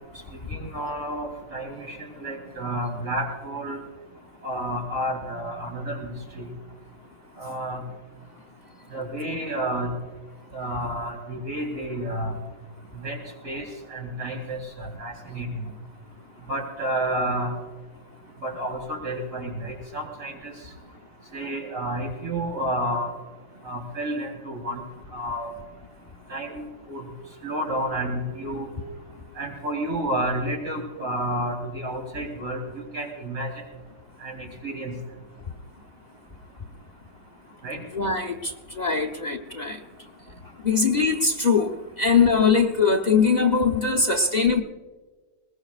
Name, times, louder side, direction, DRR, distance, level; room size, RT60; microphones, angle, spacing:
voice 1, 0.5-3.8 4.4-6.5 7.4-7.8 8.9-9.9 10.5-12.3 13.0-13.2 13.4-13.6 13.9-15.7 16.5-17.6 18.4-20.5 21.3-23.1 23.6-24.8 25.1-25.5 26.3-26.6 26.9-27.0 27.4-28.7 29.4-32.6 32.9-33.5 34.2-34.9 37.6-37.8, right 1 dB, 45° right, -1 dB, 4.2 m, -30 dB
voice 2, 37.9-39.8 40.6-44.6, left 5 dB, 40° left, 3 dB, 0.6 m, -21 dB
21.5 x 20.5 x 2.4 m, 1.3 s
omnidirectional pair, 2.0 m